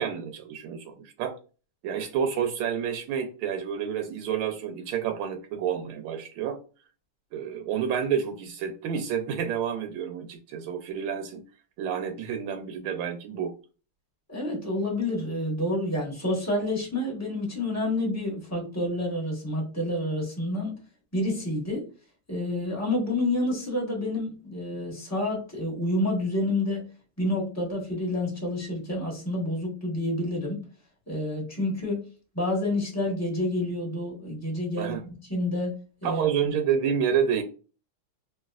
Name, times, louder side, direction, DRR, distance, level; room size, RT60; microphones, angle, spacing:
voice 1, 0.0-1.4 1.8-6.6 7.3-11.4 11.8-13.5 34.8-35.0 36.0-37.4, right 8 dB, 80° right, 1.3 m, -29 dB
voice 2, 14.3-20.8 21.1-21.9 22.3-26.8 27.2-30.6 31.1-32.0 32.3-35.7 36.0-36.3, left 1 dB, 10° left, 0.7 m, -28 dB
3.0 x 2.9 x 2.4 m
omnidirectional pair, 2.4 m